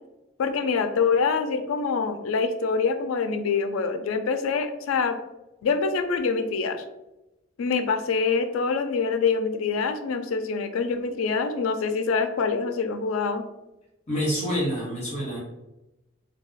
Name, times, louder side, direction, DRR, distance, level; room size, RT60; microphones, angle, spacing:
voice 1, 0.4-5.2 5.6-6.8 7.6-13.4, left 5 dB, 90° left, 9 dB, 0.4 m, -25 dB
voice 2, 14.1-15.4, equal, 35° left, -6 dB, 1.3 m, -27 dB
2.4 x 2.2 x 3.8 m, 0.96 s
head